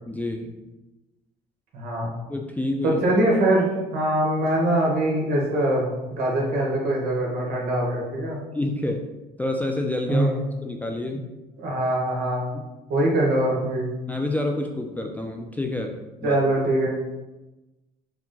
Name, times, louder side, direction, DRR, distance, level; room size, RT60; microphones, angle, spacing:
voice 1, 0.1-0.5 2.3-3.0 8.5-9.1 9.4-10.3 10.6-11.3 12.5-12.6 14.1-16.4, left 1 dB, 10° left, 3 dB, 0.3 m, -28 dB
voice 2, 1.7-2.1 2.8-8.4 10.1-10.4 11.6-12.5 12.9-13.9 16.2-16.9, right 1 dB, 65° right, -3 dB, 1.4 m, -23 dB
4.6 x 2.2 x 3.8 m, 1.1 s
cardioid pair, 110°, 17 cm